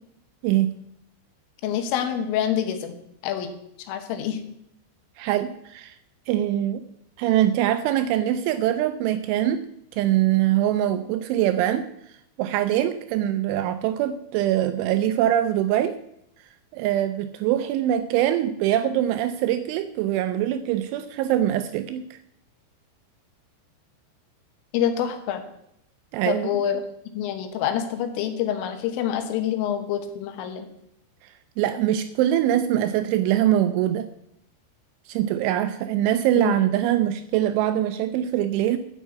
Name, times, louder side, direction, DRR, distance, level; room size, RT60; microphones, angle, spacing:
voice 1, 1.6-3.0 3.2-3.5 3.9-4.4 24.7-25.4 26.3-26.8 27.2-30.7 36.4-36.5, left 9 dB, 80° left, 7 dB, 3.7 m, -26 dB
voice 2, 5.2-5.9 6.3-6.8 7.2-9.7 9.9-11.8 12.4-16.0 16.7-22.2 26.1-26.5 31.6-34.1 35.1-38.8, right 12 dB, 85° right, 10 dB, 2.8 m, -23 dB
11.0 x 6.2 x 8.3 m, 0.76 s
omnidirectional pair, 5.9 m